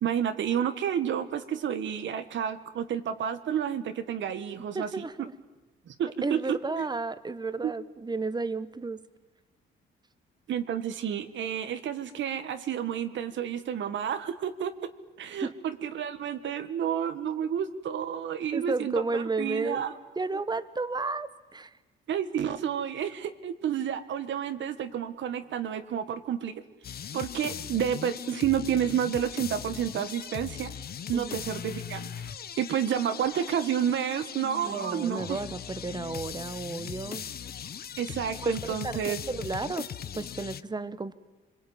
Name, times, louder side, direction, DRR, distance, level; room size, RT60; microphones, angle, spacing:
voice 1, 0.0-5.1 5.9-6.9 7.6-7.7 10.5-14.7 15.2-19.9 22.1-26.5 27.1-30.7 31.1-35.4 38.0-39.2, right 9 dB, 70° right, 9 dB, 1.7 m, -30 dB
voice 2, 4.7-5.3 6.2-9.1 15.4-15.5 18.5-19.8 20.2-21.7 31.1-31.4 34.6-37.3 38.4-41.1, right 3 dB, 20° right, 13 dB, 1.3 m, -33 dB
sound 1, 26.8-40.6, left 8 dB, 50° left, 0.9 m, -39 dB
25.5 x 21.5 x 9.0 m, 1.2 s
cardioid pair, 90°, 20 cm